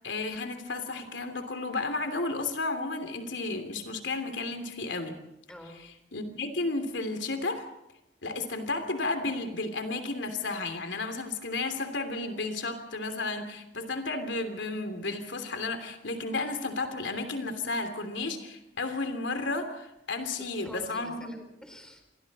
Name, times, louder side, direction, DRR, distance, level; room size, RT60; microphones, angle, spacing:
voice 1, 0.0-5.2 6.1-7.6 8.2-21.3, left 3 dB, 90° left, 7 dB, 3.1 m, -33 dB
voice 2, 5.5-5.8 20.4-22.0, equal, 5° left, 5 dB, 4.1 m, -46 dB
28.0 x 23.5 x 4.3 m, 0.87 s
head